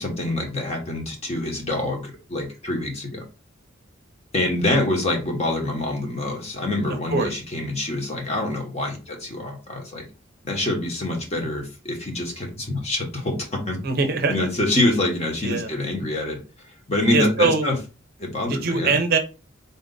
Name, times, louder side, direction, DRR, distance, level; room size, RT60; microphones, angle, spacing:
voice 1, 0.0-3.2 4.3-10.0 10.4-13.8 14.3-16.4 16.9-17.7 18.2-19.0, left 1 dB, 30° left, 1 dB, 1.0 m, -25 dB
voice 2, 13.8-14.5 15.4-15.7 17.1-17.7 18.5-19.2, right 4 dB, 50° right, 6 dB, 0.6 m, -22 dB
4.0 x 2.4 x 3.8 m, 0.31 s
head